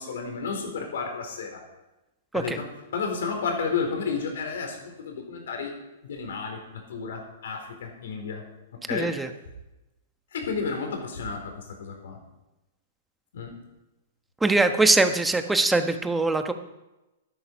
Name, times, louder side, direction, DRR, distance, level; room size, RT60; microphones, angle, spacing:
voice 1, 0.0-1.6 2.3-2.7 2.9-5.7 6.0-8.4 8.9-9.1 10.3-12.2 13.3-13.5, left 5 dB, 70° left, 3 dB, 4.1 m, -32 dB
voice 2, 8.9-9.3 14.4-16.5, right 3 dB, 10° right, 8 dB, 1.2 m, -22 dB
12.5 x 11.5 x 5.3 m, 1.0 s
hypercardioid pair, 115°, 0 cm